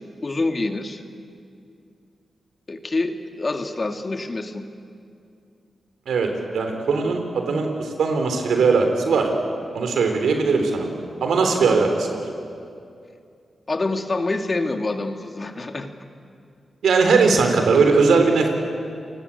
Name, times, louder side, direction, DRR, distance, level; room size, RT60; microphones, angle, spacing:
voice 1, 0.2-1.0 2.7-4.6 13.7-15.9, left 2 dB, 40° left, 5 dB, 2.3 m, -26 dB
voice 2, 6.1-9.3 9.7-10.9 11.2-12.2 16.8-18.5, right 4 dB, 85° right, 4 dB, 3.8 m, -19 dB
29.5 x 19.5 x 8.5 m, 2.4 s
cardioid pair, 55°, 0 cm